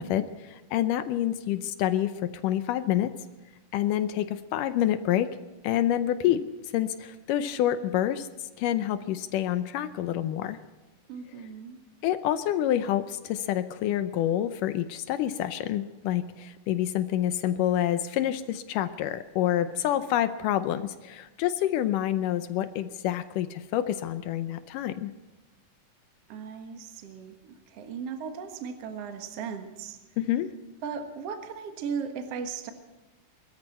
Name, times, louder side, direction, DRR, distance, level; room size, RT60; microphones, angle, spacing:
voice 1, 0.0-2.1 2.4-3.1 3.7-5.3 5.6-6.4 6.7-8.3 8.6-10.6 12.0-25.1 30.2-30.5, left 12 dB, 85° left, 10 dB, 2.3 m, -27 dB
voice 2, 11.1-11.8 26.3-30.0 30.8-32.7, right 6 dB, 55° right, 5 dB, 2.3 m, -37 dB
23.5 x 13.5 x 4.3 m, 1.2 s
omnidirectional pair, 3.7 m